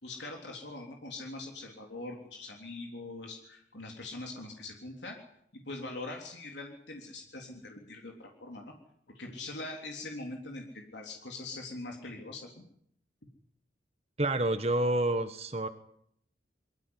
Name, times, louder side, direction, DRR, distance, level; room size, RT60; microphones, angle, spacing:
voice 1, 0.0-5.2 5.5-8.7 9.2-12.6, left 2 dB, 80° left, 1 dB, 3.6 m, -42 dB
voice 2, 14.2-15.7, right 1 dB, 35° right, 10 dB, 1.2 m, -28 dB
23.0 x 15.5 x 9.7 m, 0.68 s
head